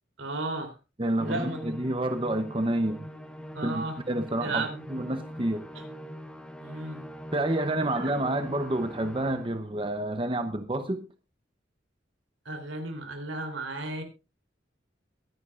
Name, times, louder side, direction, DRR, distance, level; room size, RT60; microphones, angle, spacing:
voice 1, 0.2-0.7 1.2-1.6 3.5-4.0 4.4-4.9 6.6-7.0 7.9-8.1 12.4-14.0, right 2 dB, 85° right, 5 dB, 3.4 m, -34 dB
voice 2, 1.0-3.1 3.6-5.7 7.3-11.0, right 1 dB, 25° right, 8 dB, 0.8 m, -29 dB
Musical instrument, 1.2-9.7, equal, 5° left, 1.0 m, -42 dB
22.5 x 10.5 x 2.5 m, 0.28 s
head